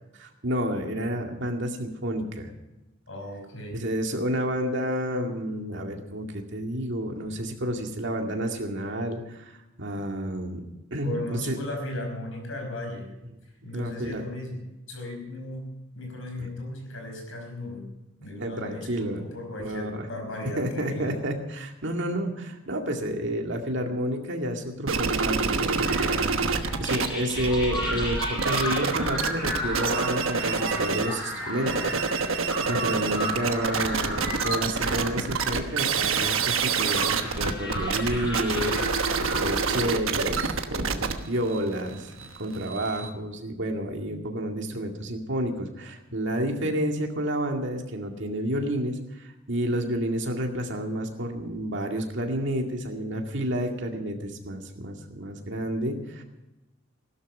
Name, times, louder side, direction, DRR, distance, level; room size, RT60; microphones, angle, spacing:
voice 1, 0.2-2.5 3.8-10.6 10.9-11.6 13.7-14.2 16.4-16.5 18.4-19.2 19.6-20.0 20.6-31.9 32.4-56.2, equal, 60° right, 2 dB, 2.2 m, -30 dB
voice 2, 3.1-3.8 11.0-13.1 13.6-17.9 18.2-21.2 26.4-26.9 32.6-33.1, left 1 dB, 75° left, 3 dB, 5.2 m, -37 dB
sound 1, 24.9-27.1 27.3-31.2 31.5-43.1, right 5 dB, 75° right, 1.2 m, -27 dB
sound 2, 25.8-39.8, equal, 20° left, 7.6 m, -34 dB
16.5 x 12.5 x 5.4 m, 0.98 s
head